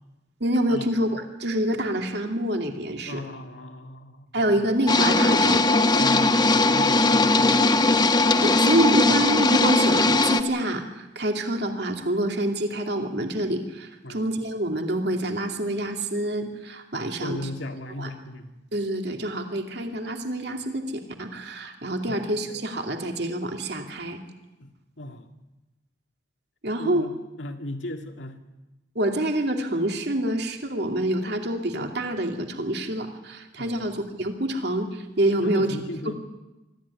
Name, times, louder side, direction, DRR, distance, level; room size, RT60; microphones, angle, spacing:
voice 1, 0.4-3.2 4.3-5.6 8.4-17.4 18.0-18.1 18.7-24.2 26.6-27.1 28.9-35.8, right 1 dB, 60° right, 4 dB, 2.5 m, -26 dB
voice 2, 3.1-4.3 6.0-7.9 9.1-9.2 14.0-14.2 17.2-18.5 22.1-22.3 24.6-24.7 25.0-25.3 26.8-27.1 27.4-28.4 33.6-33.8 35.4-36.1, left 1 dB, 80° left, 5 dB, 2.1 m, -37 dB
sound 1, 4.9-10.4, left 2 dB, 20° left, 1.1 m, -19 dB
24.5 x 13.5 x 9.8 m, 1.1 s
head